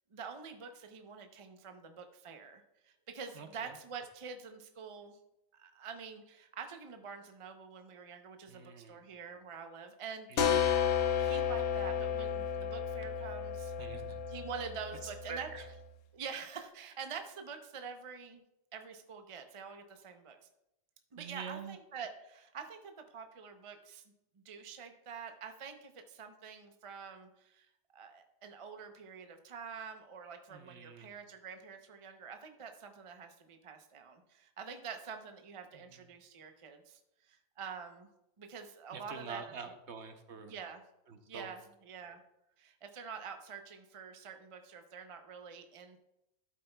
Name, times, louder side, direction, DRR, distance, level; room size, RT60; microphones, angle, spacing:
voice 1, 0.1-5.2 5.5-10.5 11.2-13.7 14.1-15.5 16.1-18.4 18.7-20.4 21.1-24.0 24.4-27.7 27.9-37.0 37.3-38.1 38.4-39.5 40.4-40.8 41.3-42.2 42.6-46.0, right 6 dB, 35° right, 6 dB, 0.5 m, -46 dB
voice 2, 3.3-3.8 8.5-9.0 10.3-10.6 13.8-14.2 15.0-15.7 21.2-21.8 30.5-31.1 35.7-35.9 38.9-40.5 41.1-41.5, right 5 dB, 60° right, 7 dB, 0.9 m, -46 dB
sound 1, 10.4-15.8, left 8 dB, 80° left, 1.2 m, -33 dB
11.5 x 8.3 x 2.2 m, 0.86 s
omnidirectional pair, 1.5 m